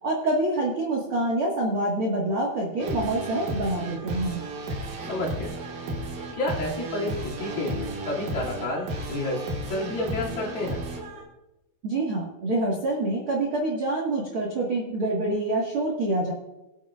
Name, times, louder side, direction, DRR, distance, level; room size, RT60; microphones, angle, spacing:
voice 1, 0.0-4.4 11.8-16.3, right 2 dB, 75° right, -3 dB, 1.2 m, -26 dB
sound 1, 2.8-11.2, right 1 dB, 60° right, 2.9 m, -34 dB
voice 2, 5.1-5.6 6.3-9.4 9.7-10.8, left 2 dB, 60° left, -5 dB, 4.2 m, -30 dB
23.5 x 8.6 x 2.5 m, 0.97 s
omnidirectional pair, 5.3 m